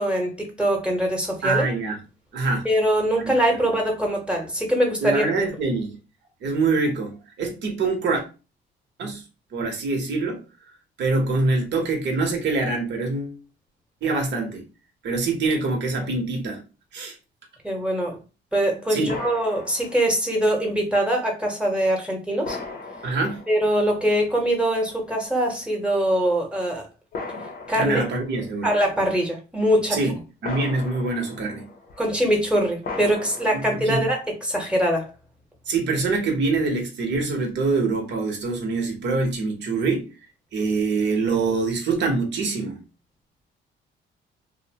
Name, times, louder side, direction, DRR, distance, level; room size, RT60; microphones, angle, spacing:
voice 1, 0.0-1.7 2.6-5.3 17.6-18.2 18.5-22.6 23.5-26.8 27.7-28.0 28.6-30.0 32.0-35.1, right 1 dB, 5° right, 1.0 m, -23 dB
voice 2, 1.4-2.0 2.3-2.7 3.2-3.3 5.0-6.0 6.4-8.2 9.0-9.2 9.5-10.4 11.0-13.3 14.0-14.6 15.0-16.6 16.9-17.1 18.9-19.1 23.0-23.4 27.3-27.5 27.7-28.7 29.9-30.1 30.4-31.7 33.7-34.1 35.7-40.1 40.5-42.8, right 3 dB, 65° right, 0.9 m, -24 dB
sound 1, 19.1-20.3 21.4-21.5 22.4-24.1 25.0-25.1 27.1-28.6 30.4-32.1 32.8-34.3, left 3 dB, 45° left, 0.6 m, -37 dB
2.6 x 2.1 x 2.8 m
cardioid pair, 90°, 20 cm